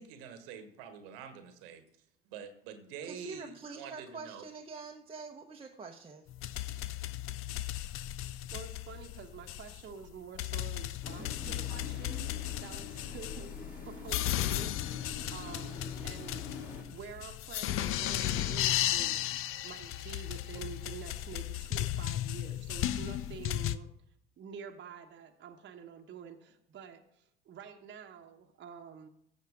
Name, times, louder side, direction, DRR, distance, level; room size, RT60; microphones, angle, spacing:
voice 1, 0.0-1.9 2.3-4.5, right 7 dB, 70° right, 9 dB, 1.3 m, -46 dB
voice 2, 3.0-6.3 11.4-11.6, right 4 dB, 20° right, 0 dB, 0.9 m, -45 dB
sound 1, 6.3-23.8, left 13 dB, 45° left, 0.5 m, -35 dB
voice 3, 8.2-12.3 12.6-16.5 16.9-19.2 19.6-23.9 24.4-29.1, right 6 dB, 40° right, 3 dB, 1.1 m, -48 dB
sound 2, 11.0-16.8, left 3 dB, 30° left, 3.8 m, -46 dB
15.0 x 6.3 x 3.7 m, 0.71 s
hypercardioid pair, 65°, 30 cm